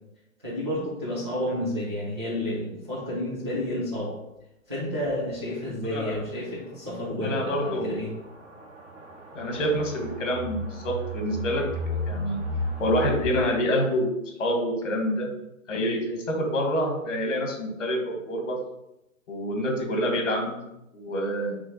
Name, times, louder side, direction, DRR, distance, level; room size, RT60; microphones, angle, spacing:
voice 1, 0.4-4.2 4.7-8.1, left 1 dB, 20° right, -10 dB, 0.5 m, -30 dB
sound 1, 5.0-5.1 5.5-5.6 6.1-6.2 7.1-13.3, left 1 dB, 60° right, 1.0 m, -34 dB
voice 2, 7.2-7.9 9.3-12.4 12.8-14.1 14.4-15.3 15.7-18.6 19.3-20.6 20.9-21.6, equal, 60° left, 2 dB, 1.4 m, -27 dB
3.6 x 3.1 x 4.1 m, 0.88 s
hypercardioid pair, 175°, 41 cm